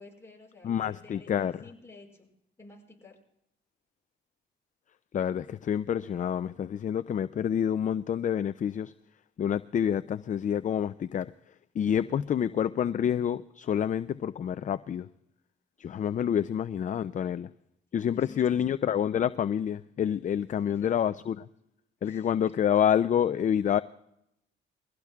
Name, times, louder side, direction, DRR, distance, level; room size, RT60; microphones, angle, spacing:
voice 1, 0.0-2.3 2.6-3.2 12.0-12.5 16.2-16.5 17.9-18.6 20.7-20.9 22.0-22.3, left 3 dB, 15° left, 5.3 m, -52 dB
voice 2, 0.6-1.6 5.1-8.9 9.4-11.3 11.8-15.1 15.8-17.5 17.9-21.5 22.0-23.8, left 9 dB, 40° left, 0.4 m, -28 dB
23.5 x 16.5 x 2.4 m
cardioid pair, 90°, 20 cm